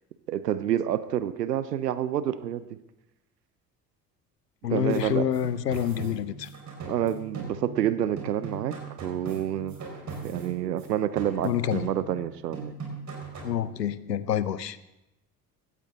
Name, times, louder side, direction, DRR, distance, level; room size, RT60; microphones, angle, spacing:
voice 1, 0.3-2.8 4.7-5.3 6.9-9.9 10.2-12.8, right 11 dB, 80° right, 16 dB, 0.6 m, -28 dB
voice 2, 4.6-6.5 11.4-11.9 13.4-14.8, left 9 dB, 85° left, 16 dB, 0.6 m, -27 dB
sound 1, 4.9-7.9 8.2-10.9 11.2-12.2 12.5-13.6, right 4 dB, 35° right, 4.9 m, -40 dB
16.5 x 13.5 x 3.8 m, 0.92 s
figure-of-eight pair, 55°, 48 cm